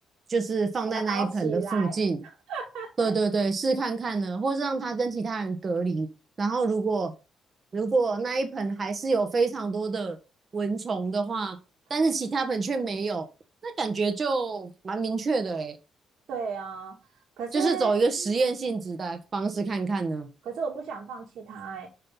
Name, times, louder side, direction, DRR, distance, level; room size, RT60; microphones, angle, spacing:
voice 1, 0.3-2.2 3.0-6.1 6.4-7.1 7.7-10.2 10.5-11.6 11.9-13.2 13.6-15.8 17.5-20.3, right 4 dB, 40° right, 1.4 m, -27 dB
voice 2, 0.9-2.0 2.5-3.1 16.3-17.0 17.4-17.9 18.2-18.3 20.4-21.9, right 6 dB, 70° right, 2.2 m, -34 dB
6.6 x 5.5 x 5.5 m
cardioid pair, 90°, 0 cm